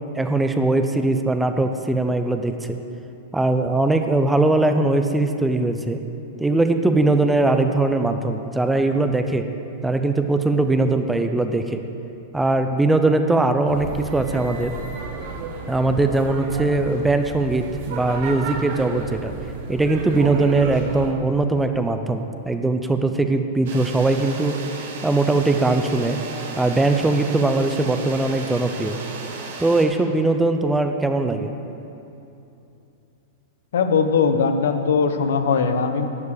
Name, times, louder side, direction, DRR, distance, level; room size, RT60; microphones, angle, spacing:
voice 1, 0.1-2.8 3.3-6.0 6.4-9.5 9.8-11.8 12.3-14.7 15.7-19.3 19.7-24.6 25.0-26.2 26.6-29.0 29.6-31.5, right 2 dB, 5° right, 7 dB, 0.3 m, -20 dB
sound 1, 13.7-21.1, right 5 dB, 45° right, 0.9 m, -33 dB
sound 2, 23.7-29.9, right 4 dB, 65° right, 1.4 m, -35 dB
voice 2, 33.7-36.1, left 5 dB, 85° left, 8 dB, 0.8 m, -20 dB
11.0 x 4.9 x 8.3 m, 2.8 s
supercardioid pair, 175°, 0 cm